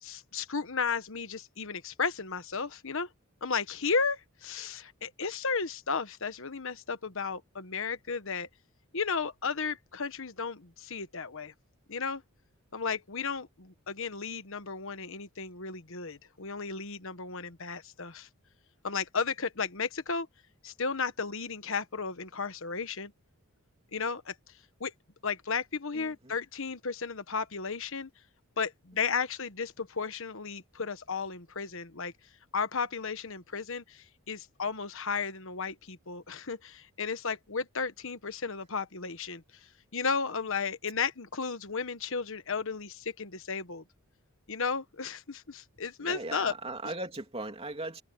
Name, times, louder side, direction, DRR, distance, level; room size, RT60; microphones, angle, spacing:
voice 1, 0.0-3.1 3.4-8.5 8.9-11.5 11.9-12.2 12.7-18.3 18.8-20.3 20.6-23.1 23.9-24.3 24.8-24.9 25.2-28.1 28.6-32.1 32.5-39.4 39.9-43.8 44.5-46.5, left 5 dB, 60° left, 1.3 m, -34 dB
voice 2, 25.9-26.4 46.0-48.0, right 2 dB, 25° right, 3.2 m, -38 dB
head